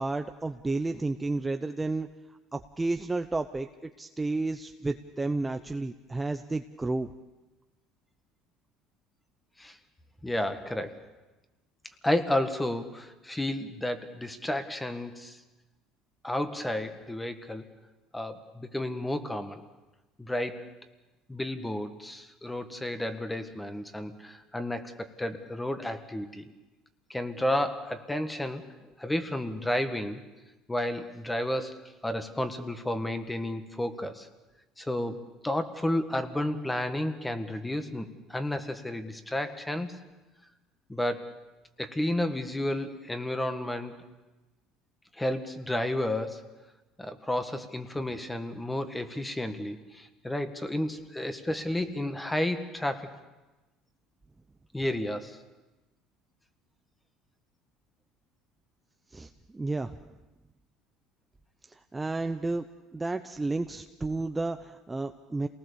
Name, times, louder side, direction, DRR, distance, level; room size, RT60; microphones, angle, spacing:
voice 1, 0.0-2.1 2.5-3.7 4.0-7.1 59.1-60.0 61.9-62.6 62.9-65.5, right 2 dB, 15° right, 7 dB, 0.7 m, -31 dB
voice 2, 10.2-11.0 12.0-15.4 16.2-17.6 18.1-19.6 20.2-20.7 21.3-26.5 27.1-28.6 29.0-30.2 30.7-34.3 34.8-40.0 40.9-41.4 41.8-43.9 45.2-46.4 47.0-53.1 54.7-55.4, left 1 dB, 10° left, 9 dB, 1.7 m, -32 dB
28.0 x 19.0 x 7.0 m, 1.1 s
cardioid pair, 115°, 0 cm